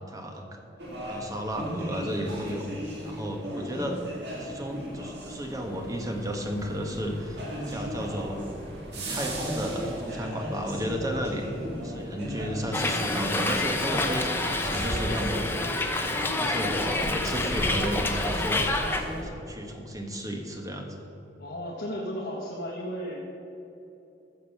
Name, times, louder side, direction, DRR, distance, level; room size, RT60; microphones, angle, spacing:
voice 1, 0.1-0.6 1.1-2.7 3.0-4.0 4.4-8.5 8.9-11.4 11.8-15.5 15.9-18.7 19.1-21.0, equal, 20° right, 2 dB, 1.3 m, -33 dB
sound 1, 0.8-19.2, equal, 60° right, 2.2 m, -36 dB
Hiss, 12.7-19.0, left 2 dB, 10° left, 0.8 m, -28 dB
voice 2, 21.4-23.3, equal, 65° left, -4 dB, 1.4 m, -34 dB
14.5 x 5.3 x 6.9 m, 2.9 s
head